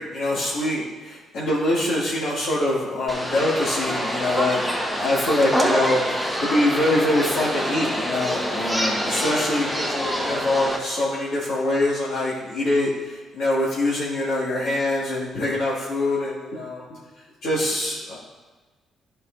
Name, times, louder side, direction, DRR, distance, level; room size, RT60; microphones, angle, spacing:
voice 1, 0.0-4.7 5.0-16.9 17.4-18.2, left 1 dB, 80° left, -10 dB, 2.1 m, -24 dB
sound 1, 3.1-10.8, equal, 10° left, 1.1 m, -26 dB
11.0 x 5.5 x 2.6 m, 1.3 s
cardioid pair, 90°, 0 cm